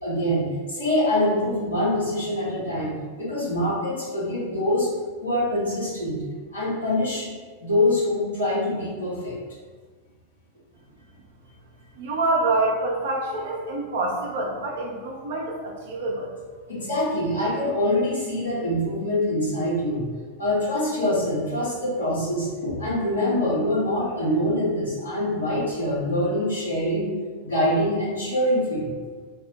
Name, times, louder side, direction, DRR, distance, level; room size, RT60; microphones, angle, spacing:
voice 1, 0.0-4.9 5.2-6.2 6.5-7.3 7.6-9.4 16.7-20.1 20.4-27.0 27.4-28.9, left 1 dB, 75° left, -8 dB, 1.2 m, -24 dB
voice 2, 12.0-16.3, right 2 dB, 60° right, -2 dB, 0.4 m, -26 dB
3.5 x 2.0 x 2.8 m, 1.5 s
figure-of-eight pair, 90°, 0 cm